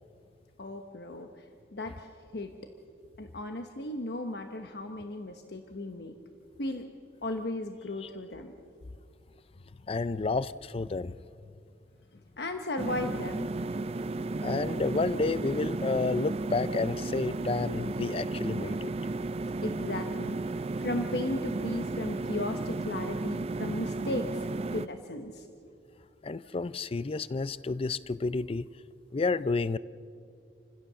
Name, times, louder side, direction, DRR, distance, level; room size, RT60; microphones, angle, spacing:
voice 1, 0.6-1.4 1.7-2.5 3.2-6.2 6.6-6.9 7.2-8.5 12.1-13.5 19.6-25.5, left 2 dB, 65° left, 5 dB, 1.1 m, -36 dB
voice 2, 9.9-11.2 14.4-18.9 26.2-28.7 29.1-29.8, left 3 dB, 35° left, 17 dB, 0.4 m, -30 dB
sound 1, 12.8-24.9, right 2 dB, 35° right, 0.4 m, -33 dB
28.0 x 16.0 x 6.9 m, 2.5 s
head